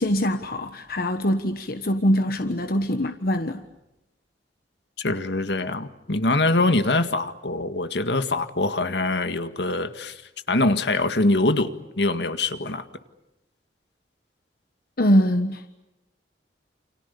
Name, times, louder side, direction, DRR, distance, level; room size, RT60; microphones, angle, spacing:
voice 1, 0.0-3.6 15.0-15.8, equal, 55° left, 1.4 m, -23 dB
voice 2, 5.0-10.1 10.5-12.8, left 2 dB, 75° left, 1.8 m, -23 dB
29.5 x 28.0 x 7.0 m
head